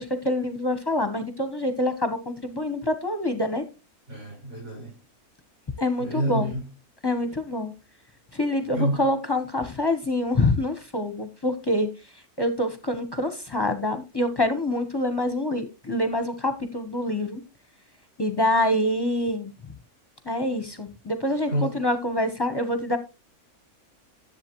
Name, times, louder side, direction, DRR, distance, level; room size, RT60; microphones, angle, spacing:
voice 1, 0.0-3.6 5.8-6.5 7.0-7.7 8.3-11.9 12.4-17.4 18.2-19.5 20.2-23.0, left 1 dB, 20° left, 0.7 m, -26 dB
voice 2, 4.1-5.0 6.0-6.6 8.7-9.0 21.5-21.7, right 1 dB, 50° right, 6.4 m, -28 dB
10.5 x 7.6 x 3.0 m
omnidirectional pair, 1.6 m